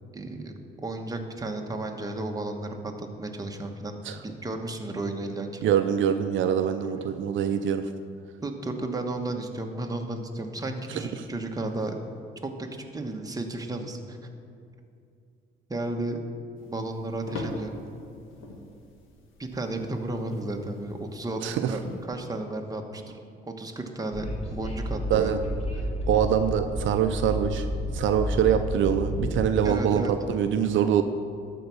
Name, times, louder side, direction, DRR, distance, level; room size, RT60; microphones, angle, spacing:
voice 1, 0.1-0.5 0.8-4.0 4.2-5.6 8.4-12.0 12.4-14.2 15.7-16.2 16.6-17.7 19.4-21.4 21.7-21.8 22.1-23.0 23.6-25.3 29.6-30.1, right 2 dB, 20° right, 3 dB, 1.2 m, -33 dB
voice 2, 5.6-7.9 21.4-21.7 25.1-25.4 26.1-27.7 27.9-31.0, right 8 dB, 75° right, 8 dB, 0.5 m, -24 dB
sound 1, 16.6-22.1, left 2 dB, 80° left, 1.5 m, -42 dB
Train, 24.1-29.5, equal, 35° left, 1.9 m, -31 dB
12.0 x 4.6 x 7.1 m, 2.5 s
cardioid pair, 90°, 20 cm